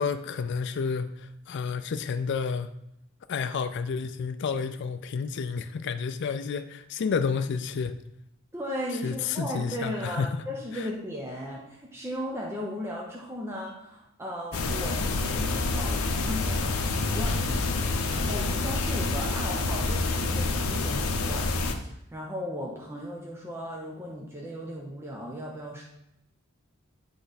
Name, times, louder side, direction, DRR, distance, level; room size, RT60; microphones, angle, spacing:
voice 1, 0.0-2.7 3.3-7.9 9.0-10.4 10.8-10.9, left 5 dB, 55° left, 0.4 m, -30 dB
voice 2, 8.5-25.8, equal, 10° right, 0.8 m, -36 dB
sound 1, 14.5-21.7, left 3 dB, 80° left, 0.8 m, -27 dB
9.8 x 3.3 x 4.1 m
head